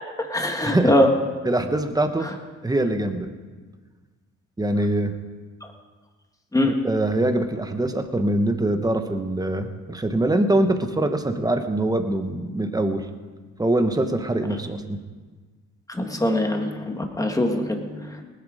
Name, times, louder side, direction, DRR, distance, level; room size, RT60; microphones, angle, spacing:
voice 1, 0.2-1.1 5.6-5.7 6.5-6.7 15.9-18.2, left 1 dB, 10° left, 4 dB, 1.8 m, -22 dB
voice 2, 1.4-2.3 2.6-3.3 4.6-5.1 6.6-13.0 13.6-15.0, right 1 dB, 10° right, 7 dB, 1.3 m, -23 dB
19.0 x 10.0 x 5.0 m, 1.4 s
cardioid pair, 90°, 30 cm